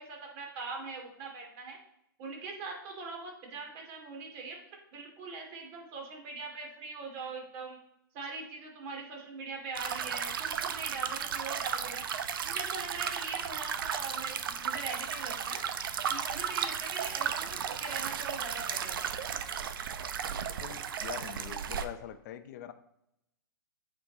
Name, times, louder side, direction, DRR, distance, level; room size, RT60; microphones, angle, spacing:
voice 1, 0.0-1.8 2.2-4.6 4.9-7.8 8.1-12.0 12.4-15.6 16.1-19.1, right 4 dB, 40° right, 1 dB, 2.4 m, -42 dB
sound 1, 9.8-21.8, right 8 dB, 70° right, 0.7 m, -34 dB
voice 2, 20.6-22.7, left 11 dB, 50° left, 10 dB, 0.7 m, -43 dB
8.3 x 4.6 x 3.9 m, 0.80 s
hypercardioid pair, 125°, 12 cm